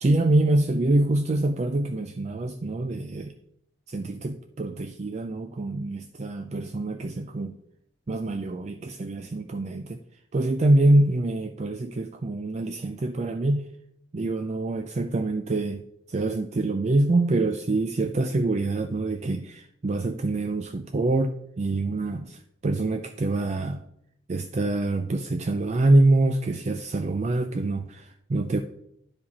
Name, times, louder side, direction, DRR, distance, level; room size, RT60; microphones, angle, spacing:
voice 1, 0.0-3.3 3.9-7.6 8.1-10.0 10.3-13.7 14.1-15.8 16.1-23.9 24.3-28.6, right 2 dB, 35° right, 7 dB, 0.4 m, -25 dB
10.0 x 5.0 x 4.1 m, 0.74 s
head